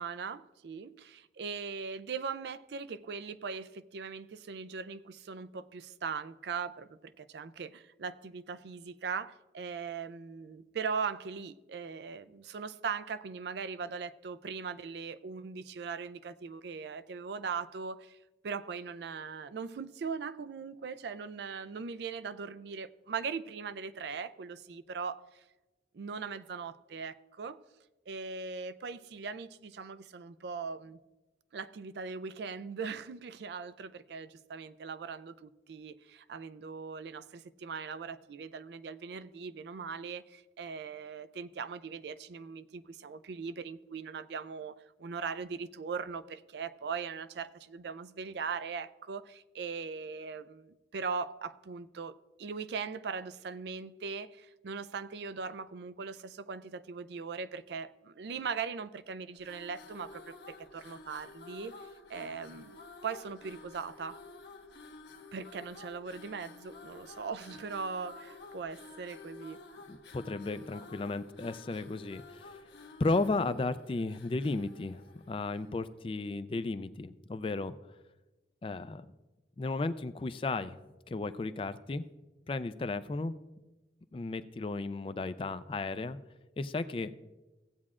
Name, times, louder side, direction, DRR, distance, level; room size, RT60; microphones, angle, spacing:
voice 1, 0.0-18.2 18.4-25.4 25.9-27.6 28.1-31.0 31.5-64.2 65.3-69.6, right 5 dB, 65° right, 0.4 m, -40 dB
sound 1, 59.3-75.8, left 3 dB, 75° left, 1.1 m, -51 dB
voice 2, 69.9-72.6 73.0-77.7 78.6-79.1 79.6-80.8 81.1-82.1 82.5-83.4 84.1-86.2 86.6-87.1, left 3 dB, 30° left, 0.3 m, -34 dB
16.5 x 8.4 x 2.4 m
head